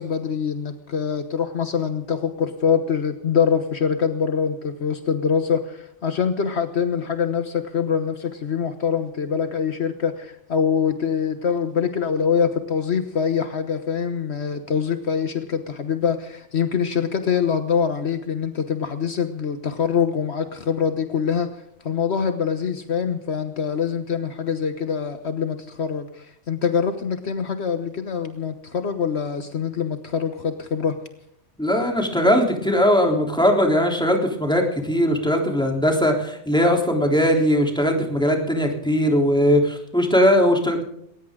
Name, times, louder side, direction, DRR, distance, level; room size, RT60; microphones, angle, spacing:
voice 1, 0.0-30.9, left 7 dB, 65° left, 8 dB, 1.4 m, -24 dB
voice 2, 31.6-40.8, equal, 5° left, 1 dB, 3.5 m, -19 dB
20.0 x 19.0 x 3.8 m, 0.70 s
omnidirectional pair, 1.2 m